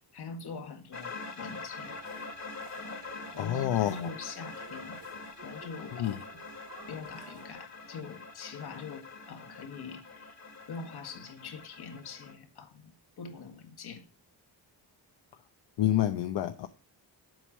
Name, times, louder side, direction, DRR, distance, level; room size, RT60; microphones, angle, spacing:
voice 1, 0.1-1.9 3.3-5.0 5.4-6.3 6.9-10.4 10.7-14.1, left 5 dB, 60° left, 1.8 m, -43 dB
sound 1, 0.9-12.3, left 4 dB, 40° left, 1.8 m, -44 dB
sound 2, 1.9-7.5, right 6 dB, 90° right, 3.8 m, -53 dB
voice 2, 3.4-4.0 6.0-6.2 15.8-16.7, left 12 dB, 80° left, 0.8 m, -27 dB
8.0 x 5.4 x 7.3 m
cardioid pair, 105°, 43 cm